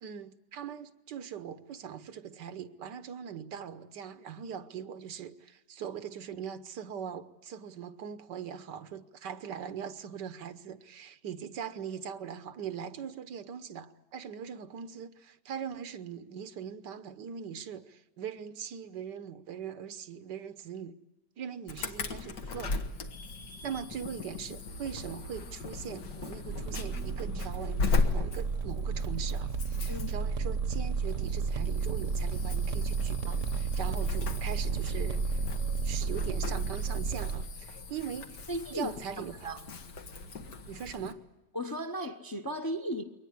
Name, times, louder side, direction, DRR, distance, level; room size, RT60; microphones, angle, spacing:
voice 1, 0.0-21.0 21.4-22.8 23.6-27.8 28.1-35.4 35.8-38.4 38.7-39.5 40.7-41.2, right 8 dB, 80° right, 1.6 m, -41 dB
Insect / Alarm, 21.7-41.1, left 3 dB, 80° left, 2.1 m, -37 dB
sound 1, 26.5-37.4, right 5 dB, 50° right, 1.2 m, -32 dB
voice 2, 38.5-39.6 41.5-43.0, equal, 20° left, 0.7 m, -36 dB
22.5 x 19.0 x 9.8 m
omnidirectional pair, 1.8 m